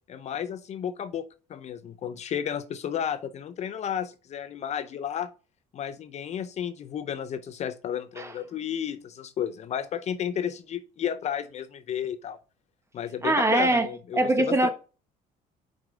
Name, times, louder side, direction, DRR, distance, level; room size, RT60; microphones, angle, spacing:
voice 1, 0.1-5.3 5.7-12.4 12.9-14.7, left 9 dB, 45° left, 0.6 m, -32 dB
voice 2, 13.2-13.9 14.2-14.7, right 2 dB, 15° right, 1.2 m, -22 dB
5.9 x 5.1 x 4.8 m
cardioid pair, 120°, 16 cm